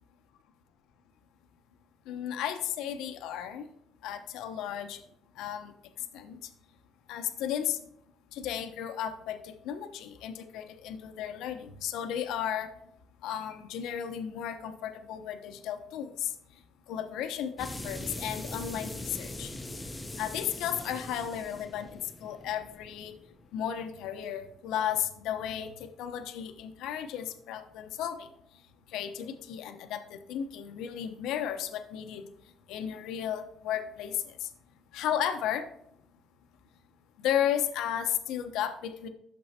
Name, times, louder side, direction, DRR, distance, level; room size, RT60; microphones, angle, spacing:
voice 1, 2.1-3.7 4.0-5.0 5.4-5.7 6.1-6.4 7.1-7.8 8.3-12.7 13.2-16.3 16.9-19.5 20.2-23.1 23.5-28.3 28.9-32.3 32.7-34.5 34.9-35.7 37.2-39.1, left 10 dB, 90° left, 7 dB, 0.8 m, -34 dB
sound 1, 17.6-24.1, left 1 dB, 10° left, 0.7 m, -42 dB
12.0 x 6.9 x 2.8 m, 0.74 s
cardioid pair, 155°, 0 cm